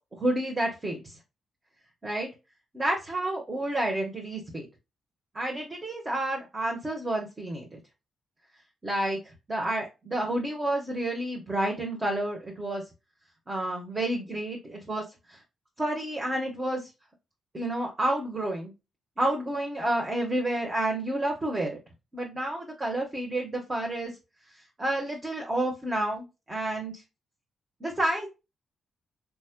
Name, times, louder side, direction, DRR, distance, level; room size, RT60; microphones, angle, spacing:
voice 1, 0.2-1.1 2.0-2.3 2.7-4.7 5.3-7.8 8.8-9.2 9.5-12.8 13.5-15.4 15.8-16.9 17.5-18.7 19.2-21.8 22.1-24.1 24.8-26.9 27.8-28.3, right 1 dB, 30° right, 0 dB, 1.2 m, -30 dB
4.7 x 3.0 x 2.2 m, 0.25 s
cardioid pair, 85°, 0 cm